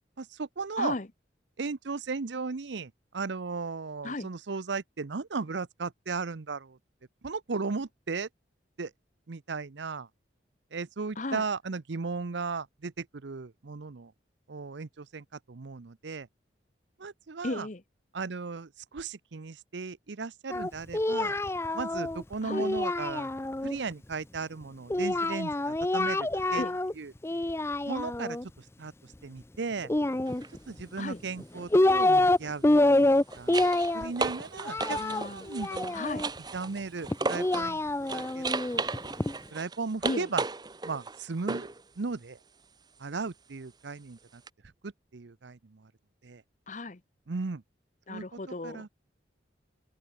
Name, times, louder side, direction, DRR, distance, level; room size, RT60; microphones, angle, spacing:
voice 1, 0.2-0.9 1.6-6.8 7.2-8.3 8.8-8.9 9.3-10.1 10.7-14.1 14.5-16.3 17.0-17.7 18.1-21.4 21.7-23.3 23.6-26.6 27.0-27.1 27.9-29.9 30.7-33.1 33.3-33.7 33.9-38.8 39.5-40.4 40.8-41.7 42.0-42.4 43.0-44.4 44.8-45.9 46.2-46.4 47.3-47.6 48.1-48.2 48.6-48.9, right 4 dB, 75° right, 0.7 m, -36 dB
voice 2, 0.8-1.1 4.0-4.3 11.2-11.4 17.4-17.8 22.4-22.7 26.5-26.8 31.0-31.2 34.9-35.5 35.9-36.3 40.0-40.3 46.7-47.0 48.1-48.9, left 2 dB, 45° left, 1.0 m, -35 dB
Singing, 20.5-23.8 24.9-26.9 27.2-28.4 29.8-30.8 31.4-32.4 32.6-36.3 37.1-39.3, left 2 dB, 15° left, 0.5 m, -27 dB
sound 1, 30.3-30.5 32.8-37.7 38.1-41.8 44.5-44.6, right 3 dB, 25° right, 0.8 m, -35 dB
head